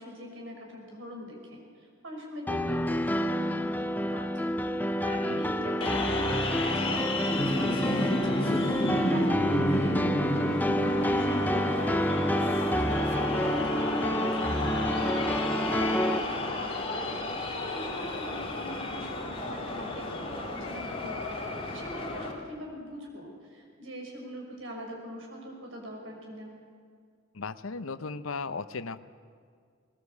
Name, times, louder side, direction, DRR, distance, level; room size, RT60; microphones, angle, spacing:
voice 1, 0.0-4.5 5.0-14.5 15.0-16.8 17.1-21.2 21.7-26.5, equal, 70° right, 0 dB, 5.8 m, -42 dB
sound 1, 2.5-16.2, equal, 10° left, 0.6 m, -28 dB
voice 2, 5.1-5.4 27.3-29.0, left 4 dB, 90° left, 13 dB, 0.8 m, -36 dB
sound 2, 5.8-22.3, left 2 dB, 30° left, 2.6 m, -32 dB
20.5 x 20.0 x 8.3 m, 2.1 s
head